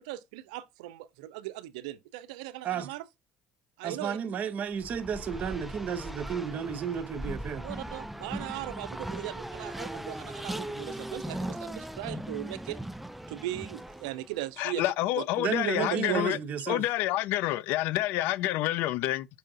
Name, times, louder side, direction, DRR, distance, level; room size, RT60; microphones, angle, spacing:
voice 1, 0.0-3.0 3.8-4.2 7.6-12.8 13.3-14.8 15.2-15.3 15.8-16.4, right 15 dB, 90° right, 0.4 m, -38 dB
voice 2, 3.8-7.7 15.4-16.8, right 7 dB, 50° right, 0.7 m, -32 dB
Race car auto racing, 4.7-14.4, right 1 dB, 5° right, 0.3 m, -39 dB
voice 3, 14.6-16.4 16.7-19.3, left 15 dB, 70° left, 0.4 m, -28 dB
5.4 x 2.4 x 3.8 m
supercardioid pair, 90°, 4 cm